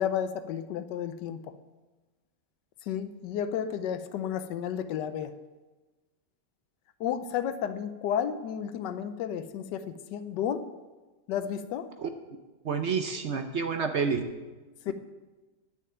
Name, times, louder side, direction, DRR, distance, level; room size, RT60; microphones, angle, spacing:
voice 1, 0.0-1.5 2.9-5.3 7.0-10.6 11.3-11.9 14.9-15.0, left 9 dB, 85° left, 11 dB, 1.3 m, -32 dB
voice 2, 12.6-14.3, right 5 dB, 55° right, 7 dB, 0.8 m, -29 dB
10.0 x 6.5 x 8.9 m, 1.2 s
omnidirectional pair, 1.8 m